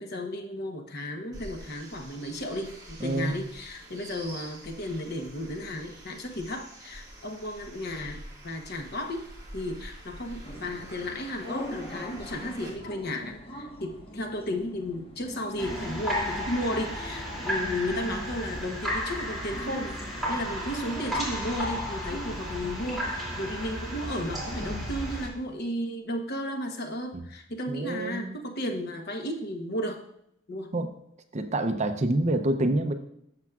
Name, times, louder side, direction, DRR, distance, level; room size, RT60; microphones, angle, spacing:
voice 1, 0.0-9.2 9.5-30.0 30.5-30.7, left 1 dB, 55° left, 4 dB, 1.0 m, -34 dB
sound 1, 1.3-12.7, right 1 dB, 20° right, 1.8 m, -46 dB
voice 2, 3.0-3.3 27.1-27.2 27.7-28.4 30.7-30.9 31.3-32.9, right 1 dB, 35° right, 8 dB, 0.6 m, -27 dB
sound 2, 10.4-24.7, equal, 30° left, 1.3 m, -43 dB
sound 3, 15.6-25.3, equal, ahead, 2.7 m, -33 dB
12.0 x 7.2 x 2.4 m, 0.76 s
head